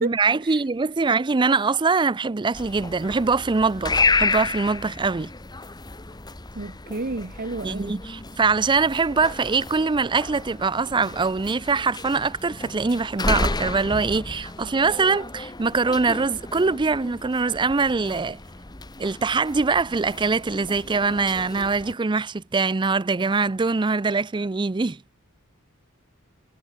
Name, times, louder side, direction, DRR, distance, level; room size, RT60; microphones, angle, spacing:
voice 1, 0.0-5.3 7.6-18.4 19.0-25.0, right 4 dB, 20° right, 0.5 m, -23 dB
sound 1, 2.5-21.9, left 3 dB, 20° left, 1.2 m, -31 dB
voice 2, 6.5-8.0, right 3 dB, 45° right, 1.2 m, -31 dB
head